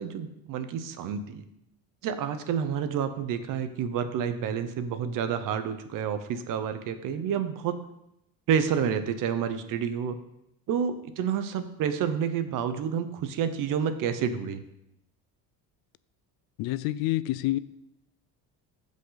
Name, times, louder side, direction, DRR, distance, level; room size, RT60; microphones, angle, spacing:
voice 1, 0.0-1.4 2.0-7.8 8.5-10.2 10.7-14.6, right 7 dB, 55° right, 1.0 m, -29 dB
voice 2, 16.6-17.6, left 16 dB, 80° left, 0.5 m, -27 dB
15.0 x 5.3 x 4.0 m
cardioid pair, 165°, 37 cm